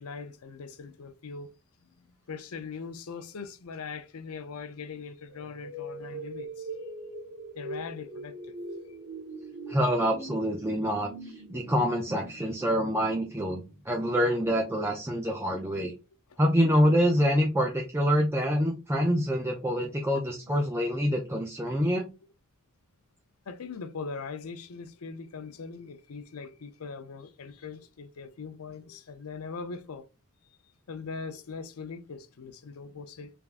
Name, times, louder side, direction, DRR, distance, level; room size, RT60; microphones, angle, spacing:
voice 1, 0.0-1.5 1.8-6.7 7.6-8.5 8.9-9.0 11.5-11.6 20.1-20.6 23.5-30.1 30.9-33.3, left 5 dB, 70° left, 0.6 m, -41 dB
sound 1, 5.3-14.2, right 1 dB, 70° right, 1.4 m, -42 dB
voice 2, 9.7-15.9 16.4-22.1, equal, 10° right, 0.5 m, -26 dB
3.5 x 3.4 x 2.5 m
head